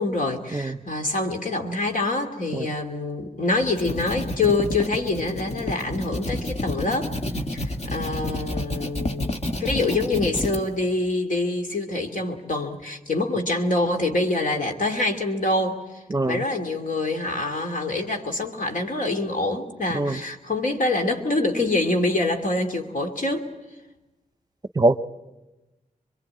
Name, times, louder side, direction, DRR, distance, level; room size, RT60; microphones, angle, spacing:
voice 1, 0.0-7.1 7.5-23.5, left 2 dB, 65° left, 3 dB, 2.7 m, -25 dB
sound 1, 3.5-10.6, left 1 dB, 45° left, 1.8 m, -29 dB
voice 2, 16.1-16.4 19.9-20.2 24.8-25.0, right 2 dB, 30° right, 13 dB, 0.8 m, -22 dB
24.0 x 23.0 x 8.8 m, 1.1 s
cardioid pair, 55°, 14 cm